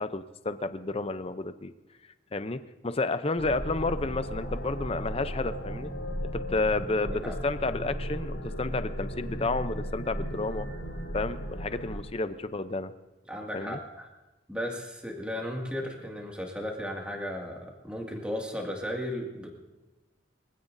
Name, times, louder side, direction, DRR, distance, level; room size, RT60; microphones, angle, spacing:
voice 1, 0.0-1.7 2.3-5.9 6.3-10.7 11.1-12.9 13.5-13.8, left 3 dB, 30° left, 11 dB, 0.6 m, -31 dB
sound 1, 3.4-12.0, equal, 80° left, 3.7 m, -35 dB
voice 2, 7.0-7.4 13.3-14.1 14.5-19.5, equal, 5° right, -1 dB, 2.1 m, -35 dB
23.5 x 16.0 x 2.7 m, 1.1 s
head